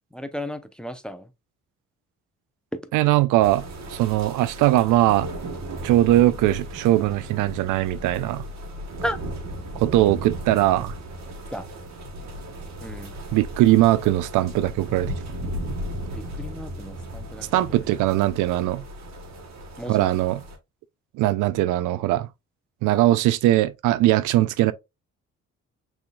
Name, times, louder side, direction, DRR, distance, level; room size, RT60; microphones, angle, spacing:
voice 1, 0.1-1.3 2.7-2.9 9.0-9.2 11.5-11.7 12.8-13.1 16.1-17.8 19.8-20.1, equal, 5° left, 0.6 m, -34 dB
voice 2, 2.9-3.6 3.9-5.3 5.8-8.4 9.8-11.0 13.3-15.1 17.5-18.8 19.9-20.4 21.2-22.3 22.8-24.7, right 15 dB, 90° right, 0.5 m, -20 dB
sound 1, 3.4-20.6, right 1 dB, 65° right, 1.4 m, -36 dB
6.0 x 3.5 x 2.3 m
cardioid pair, 90°, 30 cm